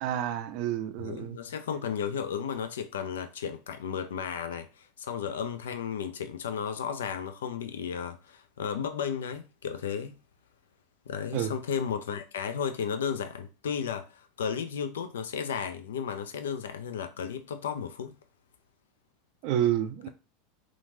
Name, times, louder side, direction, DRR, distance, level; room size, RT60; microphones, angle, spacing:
voice 1, 0.0-1.4 11.3-11.6 19.4-20.1, right 11 dB, 50° right, 0.4 m, -29 dB
voice 2, 1.0-10.2 11.1-18.1, left 7 dB, 70° left, 0.3 m, -34 dB
2.9 x 2.4 x 2.6 m
figure-of-eight pair, 80°, 0 cm